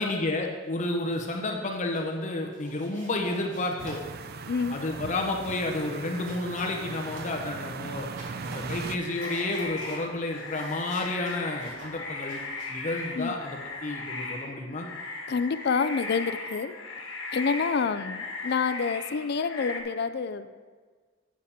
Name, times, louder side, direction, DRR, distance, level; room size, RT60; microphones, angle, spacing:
voice 1, 0.0-4.0 4.7-8.1 8.4-12.4 12.7-14.9, left 2 dB, 40° left, 1 dB, 0.8 m, -31 dB
sound 1, 0.9-1.5 1.8-2.1 2.5-7.6 8.0-13.9, right 1 dB, 80° right, 2.7 m, -49 dB
sound 2, 3.8-9.0, right 4 dB, 55° right, 0.5 m, -38 dB
voice 2, 4.5-4.8 13.2-13.3 15.3-16.7 17.3-20.6, left 5 dB, 60° left, 13 dB, 0.4 m, -28 dB
sound 3, 8.8-19.8, left 3 dB, 80° left, 1.4 m, -37 dB
8.3 x 7.5 x 4.2 m, 1.5 s
head